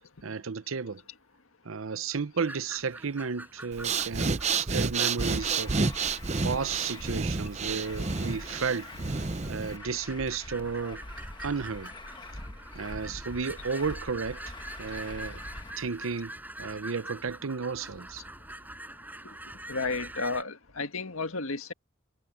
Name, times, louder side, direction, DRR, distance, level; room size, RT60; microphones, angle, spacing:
voice 1, 0.2-1.0 1.6-5.9 6.4-8.9 9.5-11.0 11.4-11.9 12.7-14.4 14.8-15.4 15.8-16.3 16.6-18.2, right 5 dB, 80° right, 0.7 m, -33 dB
sound 1, 2.4-20.4, right 1 dB, 10° right, 7.1 m, -46 dB
Breathing, 3.7-9.8, right 4 dB, 35° right, 0.7 m, -30 dB
Truck, 5.2-15.7, left 2 dB, 20° left, 1.2 m, -44 dB
voice 2, 19.7-21.7, left 3 dB, 90° left, 1.9 m, -32 dB
head